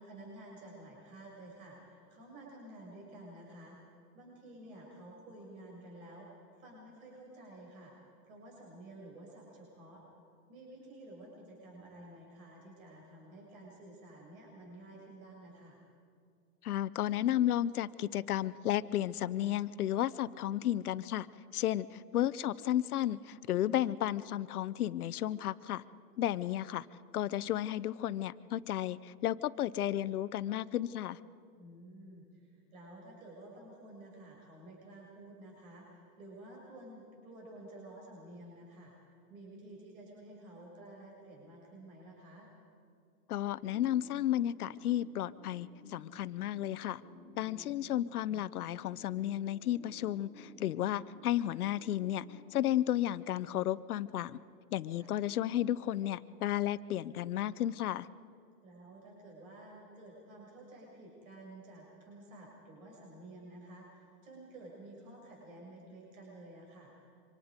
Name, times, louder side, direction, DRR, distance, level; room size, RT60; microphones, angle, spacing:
voice 1, 0.0-3.8 4.1-7.9 8.2-10.0 10.5-15.8 31.6-42.5 55.0-55.2 58.6-67.1, right 1 dB, 60° right, -2 dB, 7.0 m, -52 dB
voice 2, 16.6-21.3 21.5-21.9 22.1-25.8 26.2-26.8 27.1-31.2 43.3-47.0 47.4-52.2 52.5-54.4 54.7-58.1, left 12 dB, 70° left, 16 dB, 0.8 m, -33 dB
sound 1, 43.5-53.6, left 2 dB, 30° right, 4.0 m, -55 dB
27.0 x 25.5 x 5.2 m, 2.4 s
supercardioid pair, 175°, 47 cm